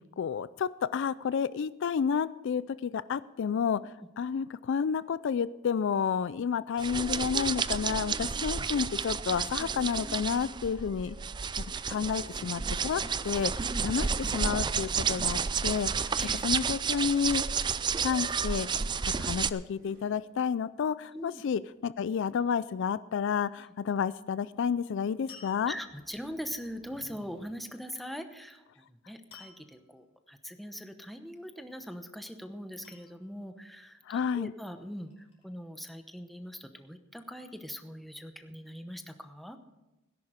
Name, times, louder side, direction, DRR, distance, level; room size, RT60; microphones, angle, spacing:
voice 1, 0.2-3.8 4.2-11.2 11.7-13.5 13.8-14.1 14.3-16.1 16.4-17.4 18.0-18.7 19.2-25.7 34.1-34.5, left 6 dB, 60° left, 16 dB, 0.4 m, -30 dB
sound 1, 6.8-19.5, right 6 dB, 20° right, 0.4 m, -31 dB
sound 2, 12.2-16.4 19.7-22.1 25.4-27.5, right 1 dB, 65° right, 4.3 m, -59 dB
voice 2, 16.1-16.4 21.1-21.4 25.7-39.6, equal, ahead, 7 dB, 0.9 m, -42 dB
sound 3, 25.3-26.2 29.3-29.9 31.3-31.8 32.8-33.6 34.6-35.5, left 5 dB, 30° left, 4.6 m, -54 dB
17.5 x 10.5 x 5.0 m, 1.0 s
head